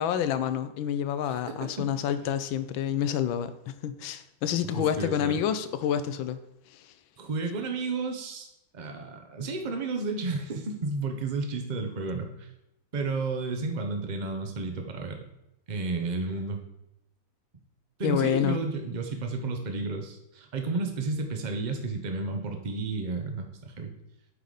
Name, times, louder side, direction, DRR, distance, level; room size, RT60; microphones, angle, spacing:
voice 1, 0.0-6.4 6.7-6.8 18.0-18.6, left 9 dB, 80° left, 12 dB, 1.3 m, -28 dB
voice 2, 1.3-1.9 4.6-5.3 7.2-8.5 8.7-12.5 12.9-15.2 15.7-16.6 18.0-23.9, right 3 dB, 50° right, 4 dB, 0.5 m, -32 dB
8.0 x 4.9 x 4.0 m, 0.85 s
omnidirectional pair, 2.1 m